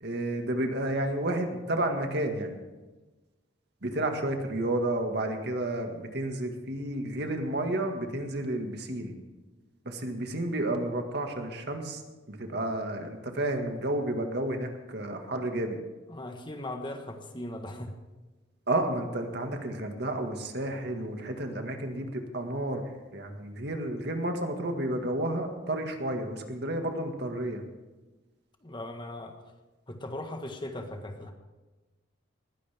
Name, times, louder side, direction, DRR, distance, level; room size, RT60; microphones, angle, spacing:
voice 1, 0.0-2.6 3.8-9.2 9.9-12.0 12.3-15.8 18.7-22.8 23.1-27.6, right 1 dB, 60° right, 4 dB, 1.9 m, -31 dB
voice 2, 16.1-17.9 28.6-29.3 29.9-31.3, left 1 dB, 25° left, 5 dB, 1.5 m, -38 dB
20.5 x 16.0 x 3.6 m, 1.2 s
head